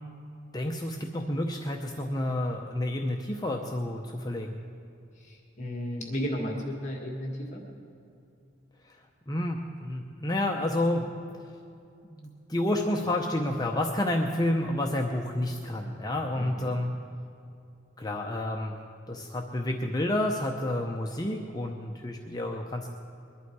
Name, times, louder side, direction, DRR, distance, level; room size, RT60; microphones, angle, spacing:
voice 1, 0.5-4.6 9.3-11.1 12.1-16.9 18.0-18.8 19.1-22.9, left 1 dB, 20° left, 1 dB, 0.7 m, -30 dB
voice 2, 5.2-7.6 16.4-16.8, equal, 40° left, -1 dB, 1.9 m, -34 dB
22.0 x 11.5 x 4.7 m, 2.6 s
head